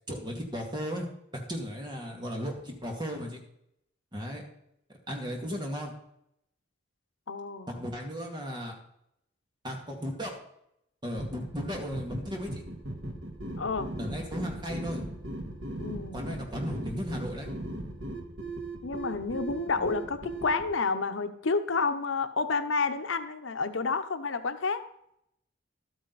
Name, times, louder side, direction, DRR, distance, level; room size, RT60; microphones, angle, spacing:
voice 1, 0.1-1.1 1.5-3.4 4.1-4.4 5.1-5.9 7.7-8.7 9.6-10.4 11.0-12.6 14.0-15.0 16.1-17.5, equal, 25° right, 1 dB, 2.2 m, -35 dB
voice 2, 7.3-7.8 13.6-13.9 15.8-16.2 18.8-24.8, left 4 dB, 80° left, 9 dB, 0.8 m, -30 dB
sound 1, 11.2-20.7, right 1 dB, 65° right, 1.8 m, -38 dB
12.5 x 9.0 x 4.1 m, 0.75 s
head